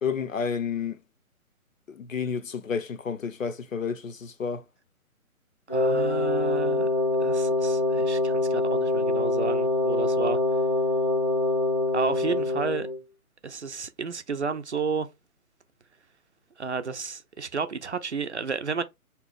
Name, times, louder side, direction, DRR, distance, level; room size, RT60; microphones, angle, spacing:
voice 1, 0.0-1.0 1.9-4.6, left 6 dB, 60° left, 0.7 m, -30 dB
Wind instrument woodwind instrument, 5.7-13.0, left 2 dB, 25° left, 0.5 m, -25 dB
voice 2, 5.7-6.9 7.2-10.4 11.9-12.9 13.4-15.1 16.6-18.8, right 5 dB, 50° right, 0.5 m, -32 dB
3.7 x 2.9 x 3.5 m
figure-of-eight pair, 140°, 44 cm